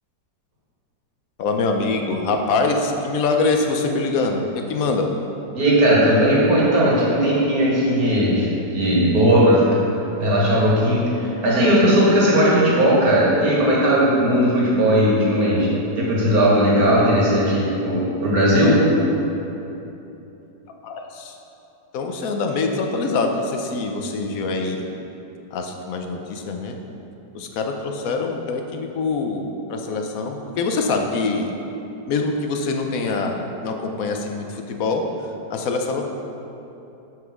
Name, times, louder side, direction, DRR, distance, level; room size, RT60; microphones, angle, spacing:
voice 1, 1.4-4.4 4.7-5.1 20.8-21.3 21.9-24.9 25.5-26.8 27.3-31.5 32.1-33.4 33.6-35.0 35.5-36.0, left 3 dB, 65° left, 4 dB, 1.0 m, -24 dB
voice 2, 5.5-9.6 10.2-15.7 16.0-18.9, equal, 60° right, -6 dB, 2.1 m, -17 dB
6.0 x 5.7 x 5.9 m, 2.9 s
omnidirectional pair, 1.9 m